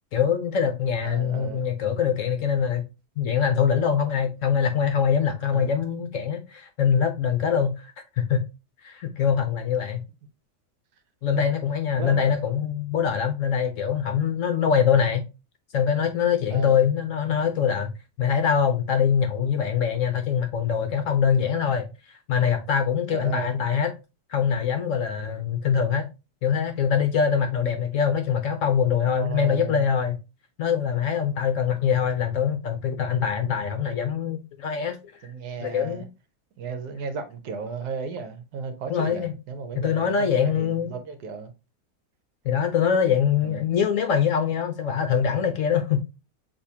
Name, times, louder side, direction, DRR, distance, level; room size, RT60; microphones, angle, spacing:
voice 1, 0.1-2.9 3.2-8.5 8.8-10.0 11.2-15.2 15.7-17.9 18.2-23.9 24.3-26.0 26.4-30.2 30.6-35.0 35.6-36.1 38.9-39.3 39.7-40.9 42.4-46.0, left 7 dB, 65° left, 0.8 m, -23 dB
voice 2, 1.0-1.7 5.5-5.8 12.0-12.3 16.5-16.8 23.1-23.5 29.2-29.9 35.2-36.1 36.6-41.5 43.4-43.6, right 5 dB, 75° right, 1.3 m, -34 dB
6.6 x 2.7 x 2.7 m
omnidirectional pair, 1.7 m